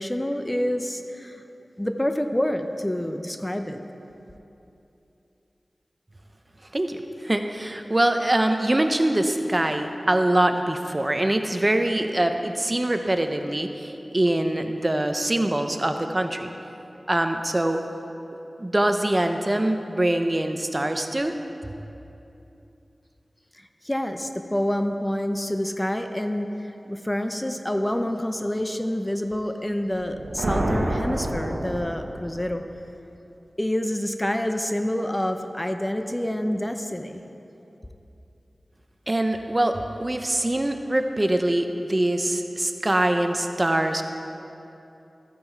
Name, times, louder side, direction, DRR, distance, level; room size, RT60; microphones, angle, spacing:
voice 1, 0.0-1.4 1.8-3.8 23.5-26.6 26.9-32.6 33.6-37.2, left 1 dB, 15° left, 6 dB, 0.7 m, -27 dB
voice 2, 6.7-16.5 17.1-17.8 18.6-21.3 39.1-44.0, right 1 dB, 30° right, 6 dB, 0.7 m, -23 dB
sound 1, 29.9-32.5, right 1 dB, 70° right, 1.2 m, -28 dB
14.0 x 9.3 x 4.6 m, 2.9 s
wide cardioid pair, 60°, 0 cm